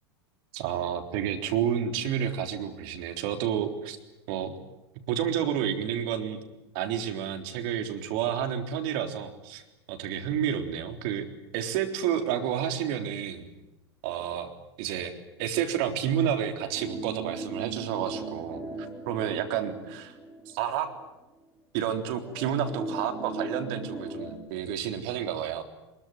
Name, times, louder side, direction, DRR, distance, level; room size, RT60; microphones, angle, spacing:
voice 1, 0.5-4.0 4.3-4.6 5.1-6.4 6.7-9.6 9.9-11.3 11.5-13.5 14.0-14.5 14.8-15.1 15.4-18.6 19.1-20.2 20.5-20.9 21.7-25.6, right 9 dB, 55° right, 6 dB, 3.7 m, -30 dB
sound 1, 16.7-21.0 21.4-21.5 22.2-24.4, right 2 dB, 5° right, 6.6 m, -38 dB
23.0 x 22.5 x 9.2 m, 0.99 s
hypercardioid pair, 95°, 14 cm